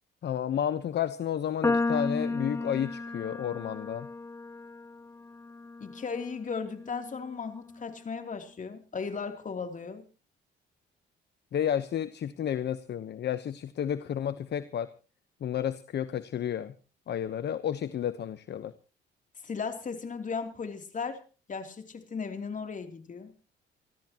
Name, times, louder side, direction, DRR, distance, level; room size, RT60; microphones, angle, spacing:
voice 1, 0.2-4.1 11.5-14.9 15.4-16.7 17.1-18.7, left 9 dB, 60° left, 13 dB, 1.0 m, -31 dB
sound 1, 1.6-8.0, left 3 dB, 15° left, 0.7 m, -34 dB
voice 2, 5.8-10.0 19.4-21.2 21.5-23.3, left 5 dB, 40° left, 6 dB, 3.1 m, -36 dB
28.0 x 13.5 x 3.0 m, 0.35 s
cardioid pair, 90°, 20 cm